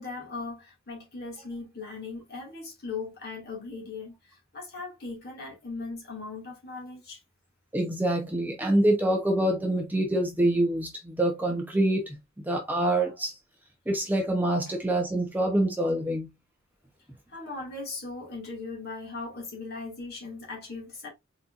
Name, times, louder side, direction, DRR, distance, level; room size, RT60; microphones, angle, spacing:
voice 1, 0.0-4.1 4.5-7.2 17.3-21.1, left 3 dB, 50° left, 2.3 m, -38 dB
voice 2, 7.7-12.1 12.5-13.3 13.9-16.3, right 1 dB, 10° right, 0.8 m, -25 dB
4.3 x 4.2 x 2.5 m
head